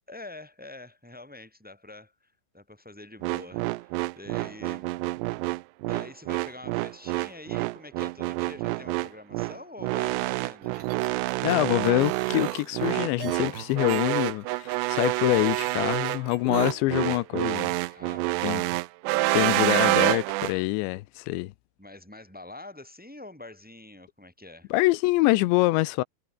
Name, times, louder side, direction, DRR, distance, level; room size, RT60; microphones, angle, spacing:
voice 1, 0.1-4.9 5.8-10.9 17.9-18.7 19.1-20.0 21.8-24.7, left 2 dB, ahead, 3.3 m, -46 dB
sound 1, 3.2-20.5, right 20 dB, 85° right, 2.8 m, -27 dB
sound 2, 10.6-16.7, right 11 dB, 70° right, 3.7 m, -41 dB
voice 2, 11.4-17.7 18.4-18.6 19.3-21.5 24.7-26.0, left 19 dB, 85° left, 3.0 m, -25 dB
omnidirectional pair, 5.1 m